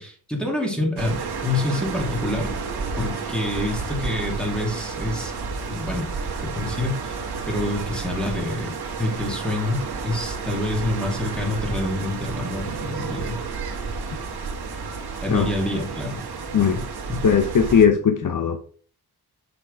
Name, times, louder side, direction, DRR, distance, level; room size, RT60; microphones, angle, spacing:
voice 1, 0.0-2.5 3.0-5.3 5.7-6.1 6.4-7.2 7.5-13.4 15.2-16.2 16.7-16.8 17.1-17.2, left 2 dB, ahead, -2 dB, 2.8 m, -27 dB
sound 1, 1.0-17.9, right 5 dB, 75° right, 1.7 m, -31 dB
voice 2, 16.5-16.8 17.2-18.6, left 7 dB, 55° left, 6 dB, 0.9 m, -18 dB
7.2 x 6.2 x 3.6 m, 0.43 s
wide cardioid pair, 110°, 39 cm